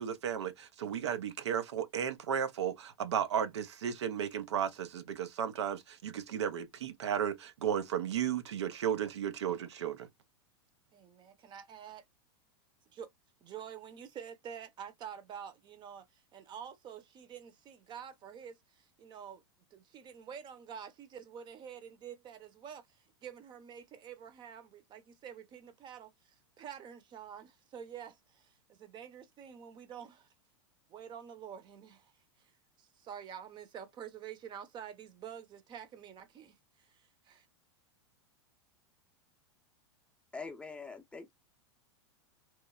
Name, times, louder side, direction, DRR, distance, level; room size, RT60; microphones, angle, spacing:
voice 1, 0.0-10.1, right 9 dB, 85° right, 0.6 m, -34 dB
voice 2, 10.9-12.0 12.9-13.1 13.4-19.4 19.7-30.3 30.9-32.1 32.8-37.5, right 8 dB, 30° right, 0.7 m, -48 dB
voice 3, 40.3-41.3, left 4 dB, 10° left, 0.6 m, -44 dB
3.1 x 2.0 x 2.3 m
hypercardioid pair, 115°, 14 cm